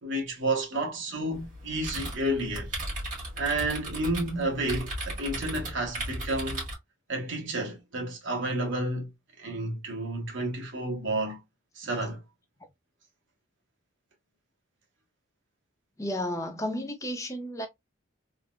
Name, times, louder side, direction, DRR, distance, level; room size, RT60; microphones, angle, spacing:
voice 1, 0.0-2.8 3.4-6.6 7.1-9.1 9.4-11.4 11.7-12.2, right 1 dB, 65° right, 1.1 m, -31 dB
sound 1, 1.3-6.7, right 1 dB, 40° right, 1.7 m, -36 dB
voice 2, 16.0-17.7, left 1 dB, 15° left, 0.5 m, -32 dB
3.5 x 2.2 x 2.4 m
head